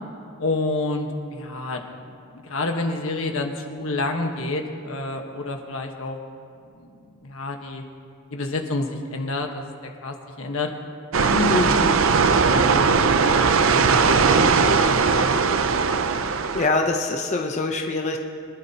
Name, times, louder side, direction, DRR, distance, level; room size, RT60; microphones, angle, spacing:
voice 1, 0.4-6.2 6.8-7.8 8.3-10.7 11.2-12.0 12.4-15.6, left 2 dB, 75° left, 3 dB, 1.4 m, -29 dB
sound 1, 11.1-16.7, right 5 dB, 65° right, 0.6 m, -19 dB
voice 2, 11.5-11.9 16.2-18.2, left 3 dB, 35° left, 1 dB, 0.8 m, -24 dB
24.0 x 12.0 x 2.9 m, 2.4 s
head